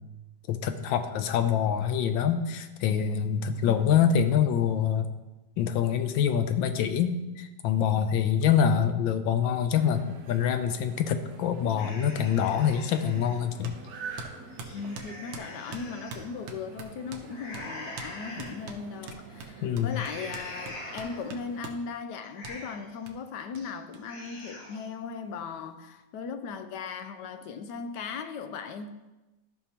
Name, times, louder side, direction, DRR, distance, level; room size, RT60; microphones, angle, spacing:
voice 1, 0.5-5.1 5.6-13.7 19.6-19.9, left 8 dB, 90° left, 1.4 m, -25 dB
voice 2, 3.6-4.0 14.7-28.9, left 5 dB, 75° left, 1.1 m, -38 dB
sound 1, 9.8-21.6, right 4 dB, 60° right, 1.2 m, -46 dB
sound 2, 11.8-13.4 13.8-13.9 14.4-16.3 17.3-18.6 19.0-19.4 19.9-21.4 21.8-21.9 22.2-23.0 23.4-23.7 24.0-24.9, left 2 dB, 50° left, 1.7 m, -44 dB
sound 3, 13.6-13.8 14.2-17.3 17.5-17.7 18.0-18.1 18.4-21.8 22.4-22.6 23.1-23.2 23.6-23.7 23.9-24.0 24.3-25.0, right 4 dB, 90° right, 1.6 m, -43 dB
13.5 x 5.5 x 2.9 m
omnidirectional pair, 2.1 m